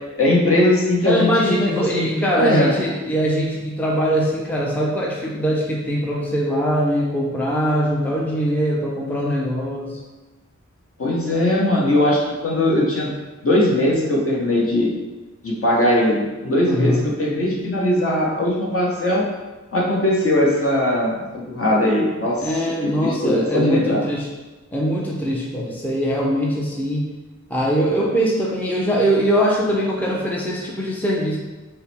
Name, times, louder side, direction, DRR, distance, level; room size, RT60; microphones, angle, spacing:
voice 1, 0.2-2.8 11.0-13.1 13.4-14.9 15.4-19.2 19.7-22.6 23.0-24.1, left 1 dB, 50° left, -3 dB, 1.0 m, -20 dB
voice 2, 1.0-10.0 16.7-17.1 22.4-24.3 24.7-27.1 27.5-31.4, equal, 5° left, -3 dB, 0.6 m, -22 dB
5.4 x 2.0 x 3.4 m, 1.2 s
wide cardioid pair, 75°, 30 cm